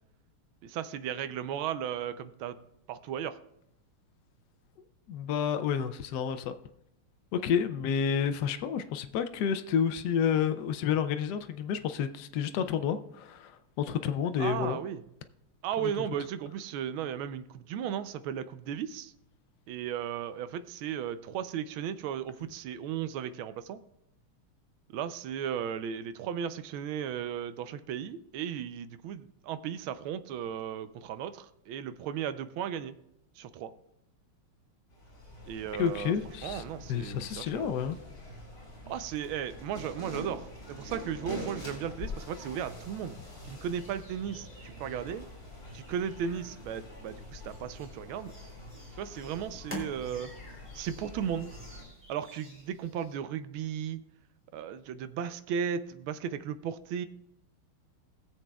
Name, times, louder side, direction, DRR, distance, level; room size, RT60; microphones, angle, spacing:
voice 1, 0.6-2.6 2.9-3.4 14.4-15.0 15.6-19.1 19.7-23.8 24.9-33.0 33.4-33.7 35.5-36.1 36.4-37.7 38.9-45.3 45.7-48.3 49.0-50.3 50.7-51.5 52.1-54.0 54.5-57.1, right 8 dB, 75° right, 1.4 m, -35 dB
voice 2, 5.1-6.5 7.3-14.8 15.8-16.1 35.8-36.6 36.9-38.0, left 7 dB, 80° left, 0.9 m, -30 dB
sound 1, 34.9-51.8, left 1 dB, 40° left, 4.3 m, -45 dB
sound 2, 43.7-53.2, left 1 dB, 5° right, 2.4 m, -50 dB
20.5 x 7.4 x 2.3 m
omnidirectional pair, 2.4 m